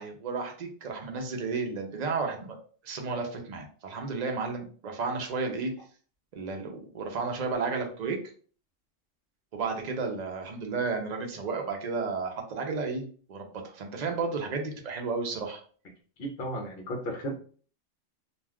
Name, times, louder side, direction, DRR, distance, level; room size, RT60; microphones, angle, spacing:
voice 1, 0.0-2.6 2.8-5.7 6.3-8.2 9.5-15.6, right 4 dB, 55° right, 3 dB, 0.5 m, -32 dB
voice 2, 16.2-17.4, equal, 55° left, 2 dB, 0.7 m, -34 dB
2.4 x 2.3 x 3.4 m, 0.43 s
omnidirectional pair, 1.3 m